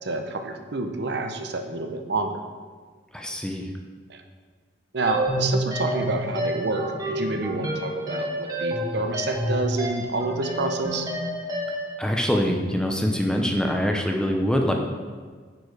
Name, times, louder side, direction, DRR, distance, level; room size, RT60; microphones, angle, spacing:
voice 1, 0.0-2.4 4.1-4.2 4.9-11.1, right 3 dB, 60° right, 6 dB, 0.7 m, -28 dB
voice 2, 3.1-3.7 12.0-14.7, equal, 5° left, 2 dB, 0.6 m, -24 dB
sound 1, 5.1-11.9, equal, 20° right, 1.2 m, -29 dB
9.5 x 4.6 x 4.7 m, 1.6 s
head